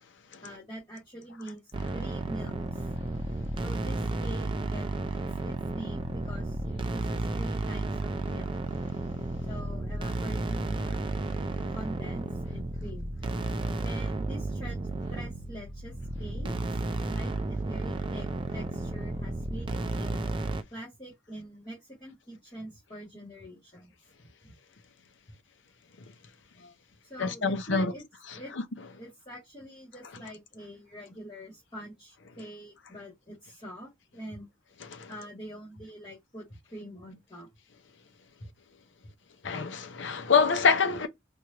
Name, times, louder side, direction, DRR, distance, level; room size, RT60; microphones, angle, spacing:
voice 1, 0.4-1.6 1.9-2.9 3.6-4.9 5.4-8.5 9.5-11.0 11.7-13.1 13.8-14.8 15.1-16.8 17.1-18.3 18.5-20.2 20.7-23.9 24.4-24.5 27.0-28.0 28.3-28.5 29.0-34.5 35.1-36.4 36.7-37.5, equal, 25° left, 2.0 m, -44 dB
sound 1, 1.7-20.6, right 2 dB, 25° right, 0.4 m, -33 dB
voice 2, 27.2-27.9 28.3-28.6 34.8-35.1 39.4-41.1, left 5 dB, 65° left, 0.6 m, -26 dB
4.5 x 2.5 x 2.9 m
head